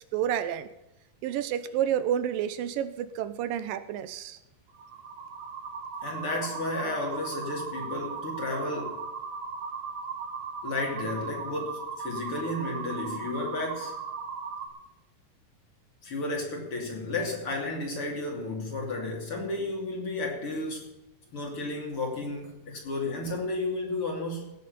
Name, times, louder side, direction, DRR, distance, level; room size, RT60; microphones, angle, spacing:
voice 1, 0.1-0.7 1.2-4.4, right 10 dB, 90° right, 2.6 m, -29 dB
sound 1, 4.7-14.7, right 5 dB, 60° right, 2.9 m, -37 dB
voice 2, 6.0-9.1 10.6-14.0 16.0-20.9 21.3-24.5, left 2 dB, 40° left, 3.5 m, -33 dB
17.0 x 6.9 x 6.9 m
omnidirectional pair, 3.8 m